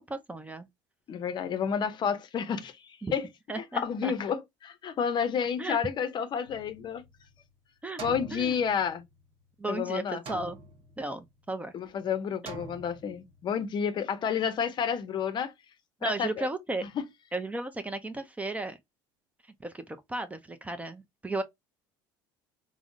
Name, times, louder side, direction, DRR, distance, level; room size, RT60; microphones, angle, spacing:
voice 1, 0.1-0.7 3.0-3.1 3.5-4.1 5.6-5.8 7.8-8.0 8.3-8.6 9.6-10.6 11.0-11.7 16.0-16.8 17.3-18.8 19.6-21.4, right 2 dB, 15° right, 0.5 m, -34 dB
voice 2, 1.1-3.3 3.6-7.0 8.0-9.0 9.7-10.2 11.7-15.5 16.0-16.5 17.0-17.1, left 7 dB, 45° left, 0.6 m, -30 dB
sound 1, 6.5-7.4 8.0-9.2 10.3-11.2 12.5-13.4, right 3 dB, 55° right, 1.1 m, -44 dB
3.5 x 2.0 x 2.4 m
supercardioid pair, 85°, 11 cm